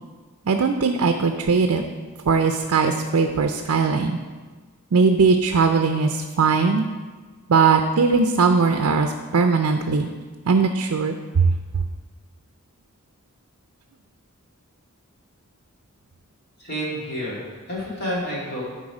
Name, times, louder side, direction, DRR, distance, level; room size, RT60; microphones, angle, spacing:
voice 1, 0.5-1.8 2.3-4.2 4.9-6.8 7.5-10.1 10.5-11.5, right 4 dB, 75° right, 5 dB, 0.5 m, -19 dB
voice 2, 16.6-18.6, equal, 45° left, -6 dB, 2.5 m, -29 dB
10.5 x 4.0 x 4.9 m, 1.4 s
head